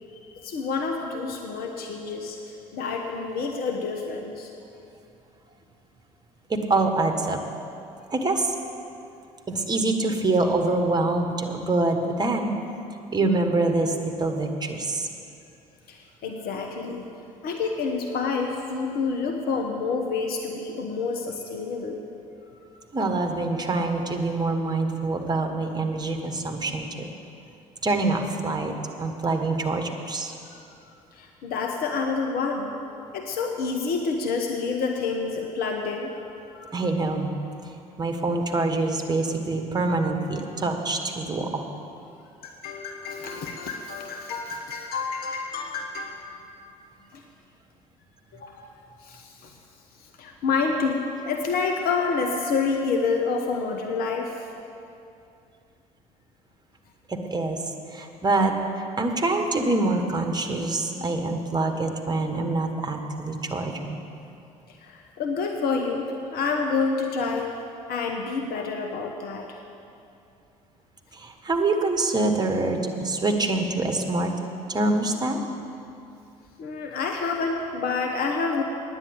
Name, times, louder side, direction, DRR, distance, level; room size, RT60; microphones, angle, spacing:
voice 1, 0.2-2.4 2.7-4.5 15.9-17.1 17.4-22.1 30.5-30.6 31.1-32.7 33.1-36.1 36.5-36.8 42.4-46.2 47.1-47.2 48.3-48.7 49.0-49.5 50.2-54.5 64.7-67.5 67.9-69.6 76.6-78.6, left 4 dB, 60° left, 3 dB, 1.0 m, -28 dB
voice 2, 6.5-7.4 8.1-8.5 9.5-12.5 13.1-15.1 22.9-27.1 27.8-30.3 36.7-37.4 37.6-41.7 57.1-64.0 71.1-74.3 74.7-75.4, right 2 dB, 20° right, 4 dB, 1.6 m, -25 dB
9.9 x 8.8 x 8.1 m, 2.6 s
hypercardioid pair, 60°, 18 cm